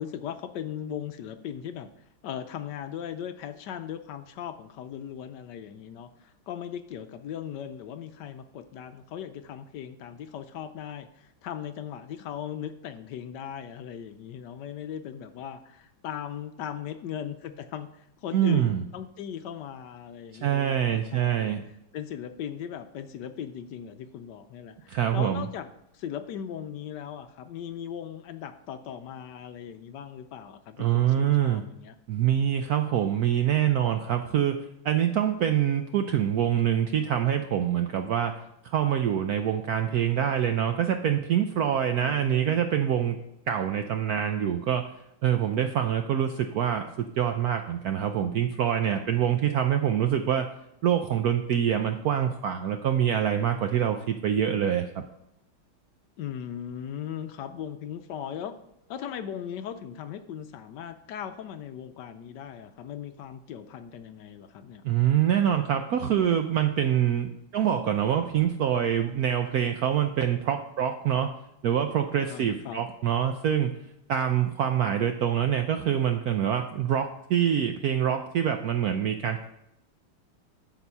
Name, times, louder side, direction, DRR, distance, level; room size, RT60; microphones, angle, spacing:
voice 1, 0.0-1.9 2.2-21.5 21.9-31.9 42.0-42.9 56.2-58.6 58.9-64.8 72.3-72.8, left 9 dB, 70° left, 9 dB, 1.1 m, -38 dB
voice 2, 18.3-18.8 20.4-21.6 24.9-25.4 30.8-31.6 32.1-38.3 38.6-43.2 43.5-44.8 45.2-50.5 50.8-55.0 64.8-71.3 71.6-73.7 74.1-79.5, right 9 dB, 75° right, 6 dB, 0.8 m, -25 dB
12.5 x 4.4 x 5.5 m, 0.81 s
omnidirectional pair, 2.2 m